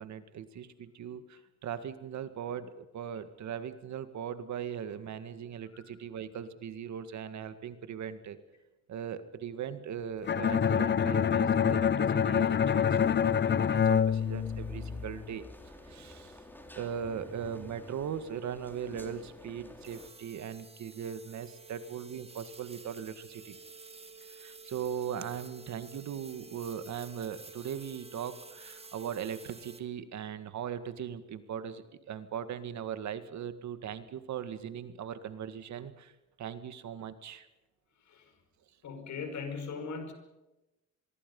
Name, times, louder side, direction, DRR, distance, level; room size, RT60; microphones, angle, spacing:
voice 1, 0.0-8.4 8.9-15.5 15.9-16.4 16.7-23.6 24.3-36.1 36.4-37.5, right 8 dB, 65° right, 11 dB, 2.0 m, -39 dB
Bowed string instrument, 10.3-15.2, left 8 dB, 35° left, 0.7 m, -26 dB
sound 1, 12.9-20.1, left 1 dB, 5° left, 3.9 m, -48 dB
sound 2, 19.8-29.8, right 4 dB, 20° right, 2.2 m, -51 dB
voice 2, 38.0-38.4 38.8-40.1, left 5 dB, 70° left, 7 dB, 5.4 m, -40 dB
26.0 x 22.5 x 5.5 m, 0.99 s
cardioid pair, 90°, 30 cm